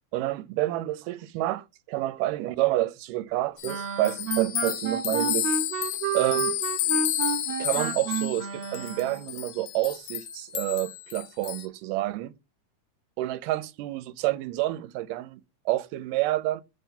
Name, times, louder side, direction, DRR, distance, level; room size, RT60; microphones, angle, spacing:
voice 1, 0.1-5.5 6.1-6.5 7.6-12.3 13.2-16.6, right 16 dB, 85° right, 2.2 m, -29 dB
sound 1, 3.6-11.7, left 13 dB, 75° left, 2.1 m, -31 dB
sound 2, 3.6-9.3, right 8 dB, 60° right, 2.0 m, -31 dB
4.8 x 3.8 x 5.5 m
omnidirectional pair, 3.7 m